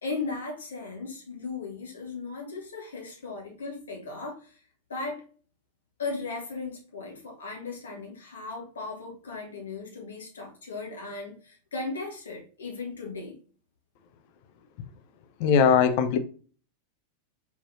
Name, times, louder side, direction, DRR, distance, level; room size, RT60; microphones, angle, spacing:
voice 1, 0.0-4.6 4.9-5.2 6.0-13.4, left 3 dB, 70° left, 1.3 m, -37 dB
voice 2, 15.4-16.2, left 7 dB, 45° left, 0.5 m, -20 dB
4.2 x 3.8 x 2.7 m
figure-of-eight pair, 90°, 0 cm